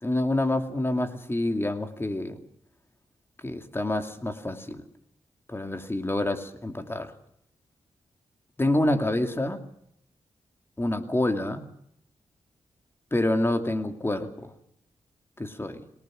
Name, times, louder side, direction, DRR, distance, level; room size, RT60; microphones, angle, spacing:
voice 1, 0.0-2.4 3.4-4.8 5.5-7.1 8.6-9.6 10.8-11.7 13.1-14.5 15.4-15.9, left 1 dB, 20° left, 6 dB, 2.5 m, -27 dB
26.0 x 18.5 x 6.3 m, 0.71 s
cardioid pair, 80°, 11 cm